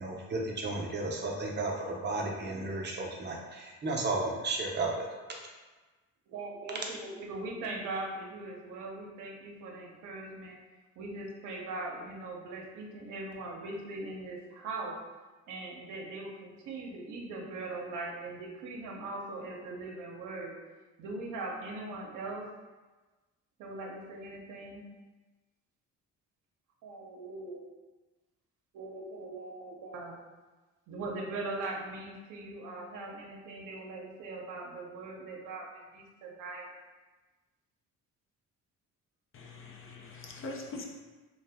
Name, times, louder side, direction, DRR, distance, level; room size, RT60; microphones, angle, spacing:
voice 1, 0.0-5.1, right 2 dB, 35° right, 0 dB, 0.6 m, -33 dB
voice 2, 6.3-10.6 11.0-15.0 15.5-20.6 21.0-22.5 23.6-24.8 26.8-27.6 28.7-30.2 30.9-36.7, right 2 dB, 85° right, -1 dB, 0.6 m, -40 dB
voice 3, 39.3-40.9, left 2 dB, 45° left, 0 dB, 0.5 m, -42 dB
2.6 x 2.1 x 3.4 m, 1.2 s
cardioid pair, 90°, 30 cm